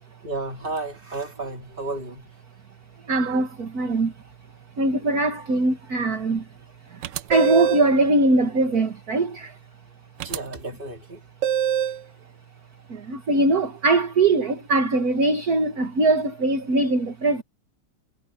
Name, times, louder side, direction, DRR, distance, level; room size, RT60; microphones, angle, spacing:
voice 1, 0.2-2.4 10.2-11.2, right 2 dB, 25° right, 3.4 m, -33 dB
voice 2, 3.0-4.1 4.8-6.5 6.8-9.6 12.9-17.4, right 2 dB, 45° right, 2.2 m, -22 dB
sound 1, 7.0-7.9 10.2-10.4 11.4-12.0, right 10 dB, 70° right, 1.2 m, -24 dB
omnidirectional pair, 2.3 m